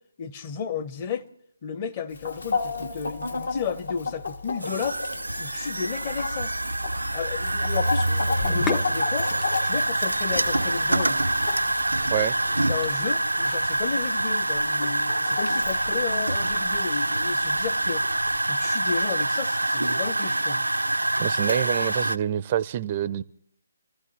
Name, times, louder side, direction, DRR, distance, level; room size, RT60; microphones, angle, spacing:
voice 1, 0.2-1.3 1.6-5.0 5.4-6.5 7.1-9.3 9.6-11.2 12.6-18.1 18.5-20.7, left 6 dB, 30° left, 0.9 m, -33 dB
Chicken rooster, 2.1-17.7, left 4 dB, 70° left, 1.7 m, -34 dB
sound 1, 4.6-22.2, right 1 dB, 85° right, 0.5 m, -25 dB
Sink (filling or washing), 8.2-19.1, left 6 dB, 10° left, 0.6 m, -41 dB
voice 2, 21.2-23.2, right 10 dB, 30° right, 0.5 m, -26 dB
26.5 x 14.5 x 3.2 m
figure-of-eight pair, 145°, 0 cm